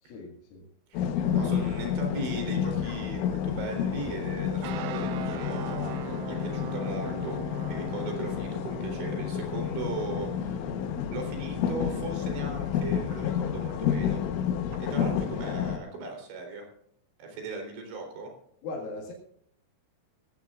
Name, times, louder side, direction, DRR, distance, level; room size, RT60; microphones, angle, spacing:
voice 1, 0.0-0.7 18.6-19.1, left 3 dB, 55° left, -2 dB, 3.1 m, -39 dB
sound 1, 0.9-15.8, left 8 dB, 75° left, 3.5 m, -30 dB
voice 2, 1.3-7.4 7.7-10.7 11.1-14.2 14.8-16.6 17.2-18.3, right 3 dB, 65° right, 2 dB, 5.8 m, -38 dB
sound 2, 4.6-14.8, right 13 dB, 80° right, 3.3 m, -42 dB
20.5 x 15.5 x 2.5 m, 0.71 s
omnidirectional pair, 5.7 m